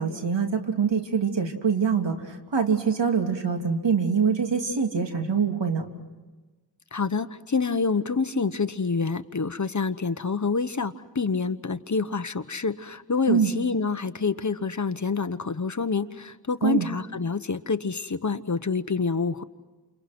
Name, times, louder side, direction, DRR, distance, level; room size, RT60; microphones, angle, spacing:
voice 1, 0.0-5.8 13.3-13.5 16.6-16.9, right 6 dB, 80° right, 4 dB, 3.2 m, -24 dB
voice 2, 6.9-19.4, left 4 dB, 45° left, 11 dB, 1.2 m, -27 dB
30.0 x 28.5 x 6.2 m, 1.2 s
wide cardioid pair, 75°, 42 cm